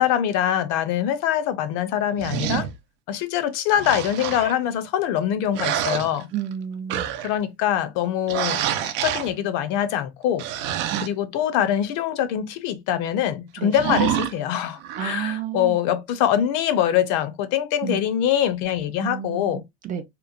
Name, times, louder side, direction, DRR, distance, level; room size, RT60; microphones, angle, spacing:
voice 1, 0.0-2.7 3.1-6.3 7.2-10.4 11.0-19.6, left 10 dB, 65° left, 0.6 m, -24 dB
sound 1, 2.2-2.8 3.7-4.6 5.5-6.5 6.9-7.4 8.3-9.3 10.4-11.1 13.7-14.3 14.8-15.2, right 10 dB, 75° right, 0.6 m, -27 dB
voice 2, 6.3-7.1 10.9-11.1 13.6-13.7 15.0-15.8 17.8-18.0 19.0-20.0, right 9 dB, 25° right, 0.4 m, -31 dB
2.9 x 2.1 x 2.4 m
cardioid pair, 145°, 31 cm